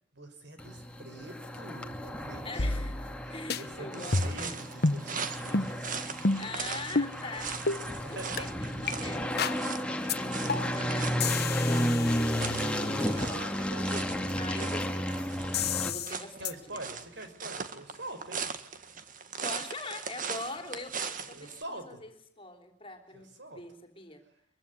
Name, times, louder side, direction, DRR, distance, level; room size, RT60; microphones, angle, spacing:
voice 1, 0.1-2.8 3.2-6.0 8.0-8.5 12.8-14.1 16.4-18.4 21.3-22.0 23.1-23.6, right 1 dB, 60° right, 8 dB, 5.8 m, -45 dB
sound 1, 0.6-15.9, equal, 5° left, 2.5 m, -33 dB
voice 2, 2.4-3.0 3.3-4.7 6.4-7.6 8.1-13.4 13.8-14.0 14.4-15.1 15.8-16.8 19.4-22.1 22.4-24.2, left 2 dB, 25° left, 6 dB, 3.5 m, -43 dB
sound 2, 2.6-3.2 3.5-3.6 4.1-4.5 4.8-5.0 5.5-5.7 6.2-6.5 7.0-7.1 7.7-7.8 8.4-8.5 8.9-9.0 9.4-9.6 10.1-10.2 10.5-10.8 11.2-13.0 15.5-16.1 16.5-16.6, left 3 dB, 55° left, 1.4 m, -30 dB
sound 3, 3.9-21.6, right 6 dB, 40° right, 1.9 m, -40 dB
23.5 x 23.5 x 9.8 m, 0.68 s
head